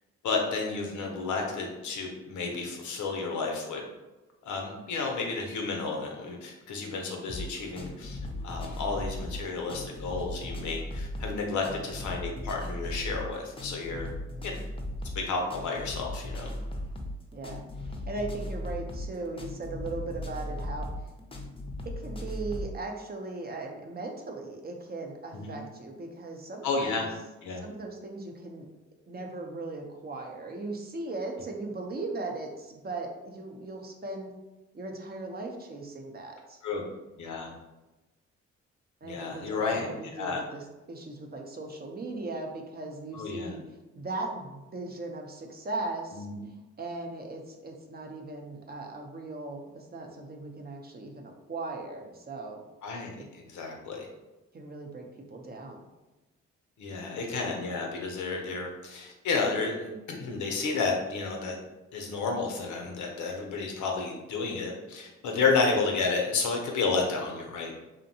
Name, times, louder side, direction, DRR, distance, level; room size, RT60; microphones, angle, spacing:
voice 1, 0.2-3.8 4.4-8.2 8.4-14.1 14.4-14.5 15.1-16.5 25.3-25.6 26.6-27.1 27.4-27.6 36.6-36.8 37.2-37.5 39.0-39.9 40.2-40.4 43.1-43.6 46.1-46.3 52.8-54.1 56.8-61.6 61.9-67.7, left 4 dB, 75° left, 1 dB, 0.7 m, -31 dB
sound 1, 7.3-22.8, left 1 dB, 20° left, 0.6 m, -37 dB
voice 2, 17.3-17.6 18.1-20.9 22.0-27.1 27.6-28.7 29.1-34.3 34.7-36.6 39.0-43.6 44.0-46.3 46.8-52.6 53.2-53.3 54.5-55.9, right 2 dB, 35° right, 2 dB, 0.6 m, -38 dB
2.6 x 2.1 x 2.7 m, 1.0 s
supercardioid pair, 55°, 29 cm